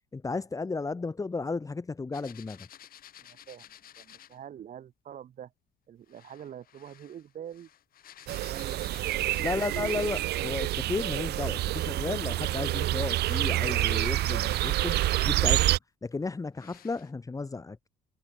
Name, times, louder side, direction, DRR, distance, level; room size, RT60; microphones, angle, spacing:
voice 1, 0.1-2.7 9.4-17.8, left 3 dB, 20° left, 2.6 m, -34 dB
sound 1, 2.1-4.4 6.1-10.4 11.6-15.5 16.0-16.1 16.6-17.1, left 11 dB, 60° left, 7.7 m, -52 dB
voice 2, 3.2-5.5 5.9-7.7 8.4-9.4 11.1-11.6, right 9 dB, 50° right, 2.8 m, -46 dB
sound 2, 8.3-15.8, right 16 dB, 75° right, 1.4 m, -28 dB
cardioid pair, 110°, 17 cm